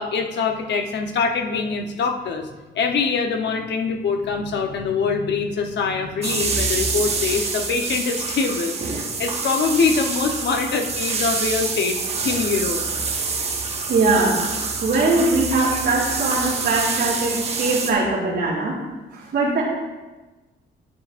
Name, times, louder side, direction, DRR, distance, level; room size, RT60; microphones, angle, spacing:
voice 1, 0.0-2.5 2.7-12.0 12.2-12.8, left 5 dB, 70° left, 4 dB, 0.9 m, -24 dB
sound 1, 6.2-17.9, right 4 dB, 35° right, 1.0 m, -26 dB
voice 2, 13.9-14.5 14.8-18.8 19.1-19.6, right 3 dB, 65° right, -9 dB, 2.6 m, -21 dB
10.5 x 9.6 x 2.5 m, 1.2 s
wide cardioid pair, 170°, 19 cm